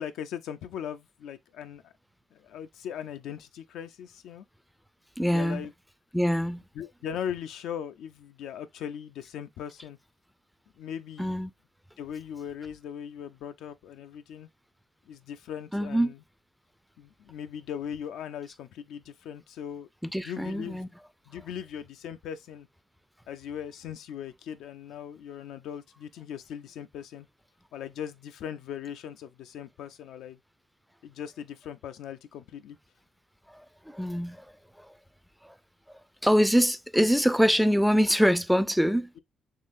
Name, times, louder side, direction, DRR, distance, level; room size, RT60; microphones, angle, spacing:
voice 1, 0.0-1.9 2.3-4.5 5.3-5.7 6.7-10.0 10.8-11.4 12.0-14.5 15.1-16.2 17.0-19.9 20.2-20.9 21.3-22.7 23.3-27.3 27.7-30.4 31.0-32.8, left 9 dB, 85° left, 0.4 m, -39 dB
voice 2, 5.2-5.7 6.1-6.6 11.2-11.5 15.7-16.1 20.0-20.9 33.5-33.6 33.9-34.5 34.8-34.9 35.4-35.5 35.9-39.1, equal, ahead, 0.4 m, -24 dB
3.7 x 3.1 x 2.5 m
cardioid pair, 90°, 0 cm